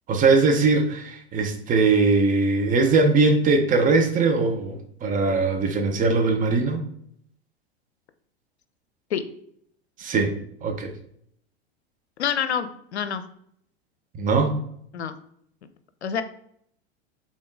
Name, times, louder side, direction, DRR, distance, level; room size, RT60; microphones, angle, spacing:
voice 1, 0.1-6.8 10.0-10.3 10.6-10.9 14.2-14.5, right 3 dB, 25° right, 5 dB, 0.7 m, -21 dB
voice 2, 12.2-13.2 14.9-15.1 16.0-16.2, left 8 dB, 90° left, 11 dB, 0.5 m, -27 dB
3.6 x 3.6 x 3.8 m, 0.69 s
hypercardioid pair, 95°, 32 cm